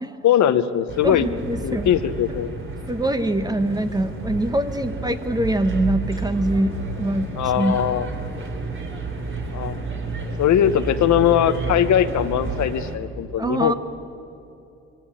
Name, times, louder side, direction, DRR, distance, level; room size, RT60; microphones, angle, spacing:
voice 1, 0.2-1.3 1.6-2.5 7.4-8.1 9.5-9.8 10.4-13.7, left 10 dB, 70° left, 11 dB, 1.0 m, -20 dB
sound 1, 0.9-13.0, right 3 dB, 40° right, 3.1 m, -30 dB
voice 2, 1.0-1.9 2.9-7.8 13.4-13.7, right 1 dB, 15° right, 10 dB, 1.1 m, -24 dB
20.5 x 16.5 x 8.6 m, 2.8 s
cardioid pair, 90°, 30 cm